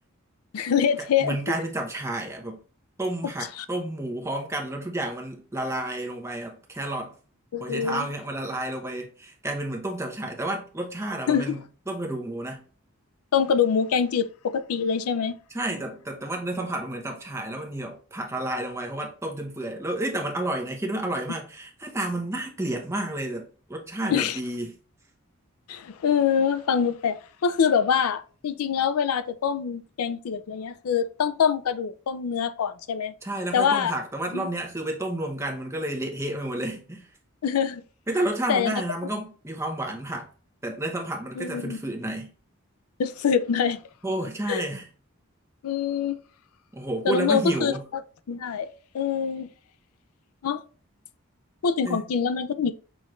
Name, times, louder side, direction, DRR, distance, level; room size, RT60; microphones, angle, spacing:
voice 1, 0.5-1.4 3.6-3.7 7.5-8.1 11.3-11.6 13.3-15.3 24.1-24.4 25.7-33.1 33.5-33.9 34.3-34.5 37.4-37.8 38.5-38.7 41.4-41.8 43.0-43.8 44.5-44.7 45.6-46.2 47.0-47.7 48.3-48.7 48.9-49.5 50.4-50.6 51.6-52.7, left 7 dB, 90° left, 0.4 m, -24 dB
voice 2, 1.2-2.6 3.0-7.2 7.6-12.7 15.5-24.7 33.2-37.1 38.1-40.3 40.6-42.3 44.0-44.9 46.7-47.9 51.8-52.1, right 1 dB, 15° right, 0.8 m, -31 dB
6.1 x 2.5 x 3.1 m
head